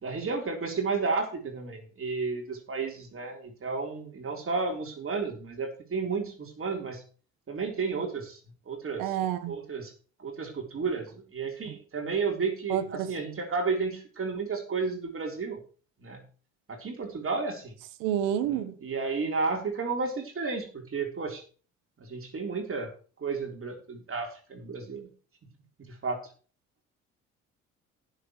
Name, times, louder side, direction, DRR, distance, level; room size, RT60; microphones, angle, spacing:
voice 1, 0.0-7.0 7.5-8.4 8.7-9.2 9.5-9.9 10.2-11.1 11.3-15.6 16.0-16.2 16.7-17.7 18.5-21.4 22.1-22.9 23.2-25.1 25.9-26.3, right 4 dB, 40° right, 3.9 m, -32 dB
voice 2, 9.0-9.5 12.7-13.1 18.0-18.7, right 10 dB, 75° right, 1.4 m, -29 dB
18.5 x 7.2 x 3.2 m
hypercardioid pair, 55°, 34 cm